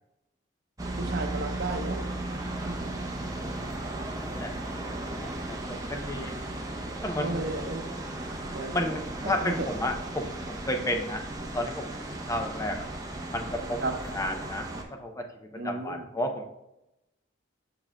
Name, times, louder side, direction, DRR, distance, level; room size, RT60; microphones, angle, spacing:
sound 1, 0.8-14.8, right 1 dB, 20° right, 0.7 m, -36 dB
voice 1, 1.0-2.0 2.6-3.0 7.2-7.9 8.5-8.8 9.2-9.7 13.8-13.9 15.6-16.1, right 2 dB, 55° right, 5 dB, 0.7 m, -33 dB
voice 2, 4.2-6.4 7.0-7.6 8.7-11.3 11.5-12.9 13.3-13.8 14.1-16.5, left 1 dB, 15° left, 5 dB, 0.5 m, -33 dB
8.9 x 5.9 x 2.2 m, 0.90 s
head